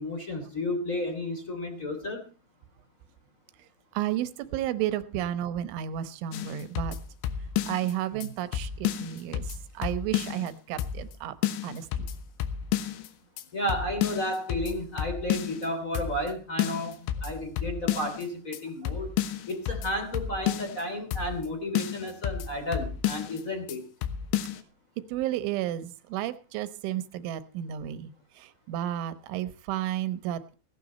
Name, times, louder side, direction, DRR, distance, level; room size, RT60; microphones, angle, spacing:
voice 1, 0.0-2.2 8.2-8.3 13.5-19.1 19.5-23.8, left 1 dB, 20° left, 4 dB, 2.4 m, -32 dB
voice 2, 3.9-7.0 7.6-11.4 11.6-12.1 18.8-18.9 25.1-30.6, right 12 dB, 90° right, 13 dB, 3.4 m, -32 dB
sound 1, 6.3-7.9 8.2-8.3 8.5-10.5 10.8-11.2 11.4-13.1 13.4-13.5 13.7-15.7 16.0-16.3 16.6-18.3 18.5-18.6 18.9-20.8 21.1-21.5 21.8-23.4 23.7-23.8 24.0-24.6, left 10 dB, 80° left, 3.4 m, -31 dB
17.0 x 12.0 x 4.2 m, 0.33 s
omnidirectional pair, 5.3 m